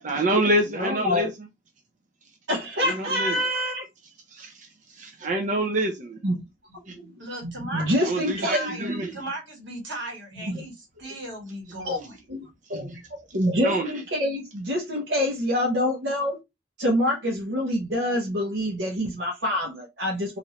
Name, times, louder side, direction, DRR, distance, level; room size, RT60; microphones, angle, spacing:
voice 1, 0.0-1.3 2.8-3.4 4.3-6.2 6.9-7.0 8.0-9.1 13.6-13.9, right 1 dB, 45° right, 0.5 m, -26 dB
voice 2, 0.7-1.3 2.5-3.8 6.2-6.4 6.9-7.1 7.7-8.7 10.5-10.7 11.0-11.1 11.8-12.0 12.3-12.9 13.3-16.4 16.8-20.4, left 1 dB, 75° right, 0.9 m, -26 dB
voice 3, 6.8-12.5 12.8-13.0, right 1 dB, 90° right, 1.6 m, -37 dB
3.2 x 2.5 x 2.9 m
head